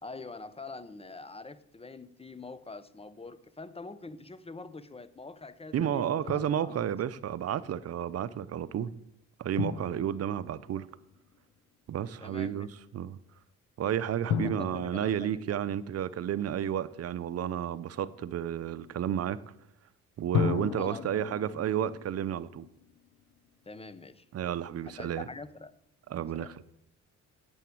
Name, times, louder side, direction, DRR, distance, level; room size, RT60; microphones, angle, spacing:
voice 1, 0.0-6.9 12.2-12.7 14.3-15.6 20.8-21.2 23.7-24.3 25.0-25.7 26.3-26.5, left 3 dB, 20° left, 0.7 m, -45 dB
voice 2, 5.7-8.9 9.4-10.9 11.9-12.7 12.9-13.2 13.8-19.4 20.2-22.7 24.3-25.2 26.1-26.6, right 9 dB, 55° right, 0.7 m, -31 dB
Drum, 6.3-7.0 9.6-11.4 14.3-16.8 20.3-23.5, left 8 dB, 75° left, 0.9 m, -36 dB
8.9 x 7.2 x 7.7 m
cardioid pair, 90°, 30 cm